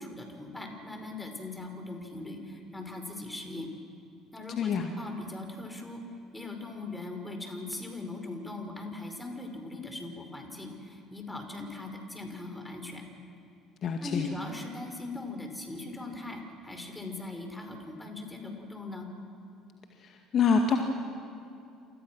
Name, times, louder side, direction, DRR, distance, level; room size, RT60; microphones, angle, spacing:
voice 1, 0.0-3.7 4.3-6.0 6.3-13.1 14.0-19.1, left 2 dB, 10° left, 4 dB, 5.5 m, -40 dB
voice 2, 4.6-4.9 13.8-14.3 20.0-20.8, left 6 dB, 40° left, 4 dB, 1.9 m, -26 dB
30.0 x 27.5 x 6.3 m, 2.6 s
figure-of-eight pair, 55°, 0 cm